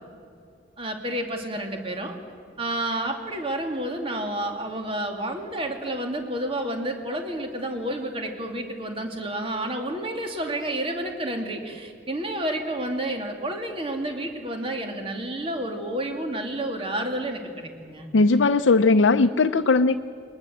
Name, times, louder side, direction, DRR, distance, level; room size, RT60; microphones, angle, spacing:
voice 1, 0.8-2.2 2.6-18.1, right 1 dB, 30° right, 4 dB, 2.4 m, -30 dB
voice 2, 18.1-19.9, left 3 dB, 90° left, 7 dB, 0.6 m, -18 dB
22.0 x 20.0 x 7.9 m, 2.4 s
head